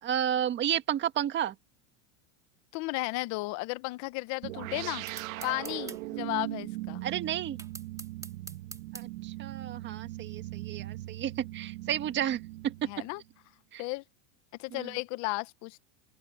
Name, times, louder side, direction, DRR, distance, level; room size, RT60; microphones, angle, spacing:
voice 1, 0.0-1.5 7.0-7.6 8.9-12.9 13.7-13.8 14.7-14.9, right 10 dB, 30° right, 1.7 m, -32 dB
voice 2, 2.7-5.0 5.4-7.0 12.8-13.2 13.8-14.0 14.6-15.8, left 22 dB, 45° left, 1.1 m, -34 dB
sound 1, 4.4-13.2, right 18 dB, 80° right, 1.8 m, -39 dB
sound 2, 5.1-6.0 7.6-9.1, right 3 dB, 10° right, 3.0 m, -44 dB
open air
supercardioid pair, 155°, 40 cm